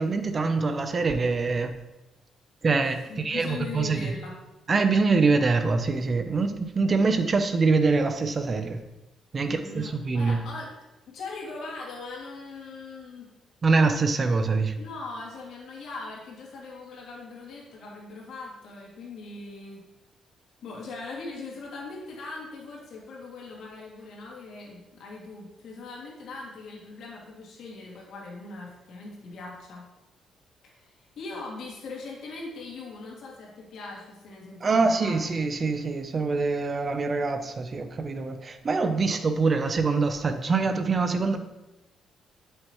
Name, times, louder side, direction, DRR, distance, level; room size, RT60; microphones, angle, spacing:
voice 1, 0.0-1.7 2.6-4.1 4.7-8.8 9.3-10.4 13.6-14.7 34.6-41.4, right 4 dB, 40° right, 8 dB, 0.8 m, -24 dB
voice 2, 3.1-4.4 9.4-10.7 11.1-13.3 14.7-19.8 20.6-29.9 30.6-35.3, left 3 dB, 70° left, -3 dB, 2.6 m, -40 dB
8.0 x 7.7 x 3.2 m, 0.98 s
cardioid pair, 90°, 0 cm